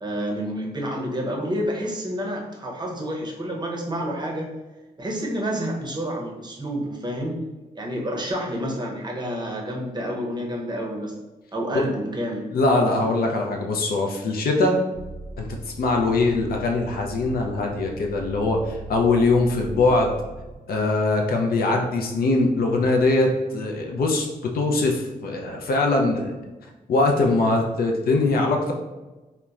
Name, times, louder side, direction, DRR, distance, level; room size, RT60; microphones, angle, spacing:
voice 1, 0.0-4.5 5.0-7.5 7.8-11.2 11.5-12.5, equal, 25° right, -1 dB, 0.6 m, -29 dB
voice 2, 12.5-14.8 15.4-15.5 15.8-20.1 20.7-26.3 26.9-28.7, left 2 dB, 65° left, 2 dB, 0.4 m, -22 dB
sound 1, 14.9-20.6, right 3 dB, 15° left, 0.6 m, -39 dB
2.9 x 2.1 x 2.3 m, 1.1 s
cardioid pair, 65°, 16 cm